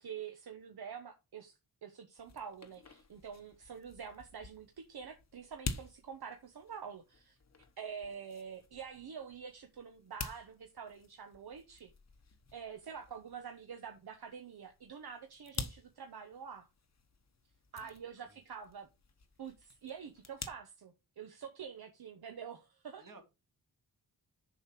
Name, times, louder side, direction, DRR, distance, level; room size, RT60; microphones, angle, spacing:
voice 1, 0.0-7.4 7.8-11.9 12.5-16.7 17.7-18.9 19.4-23.1, right 7 dB, 75° right, 1.1 m, -47 dB
sound 1, 2.2-20.5, left 4 dB, 45° left, 1.0 m, -49 dB
voice 2, 17.8-18.4 23.0-23.2, right 3 dB, 55° right, 2.4 m, -58 dB
7.0 x 5.0 x 5.9 m
wide cardioid pair, 155°, 38 cm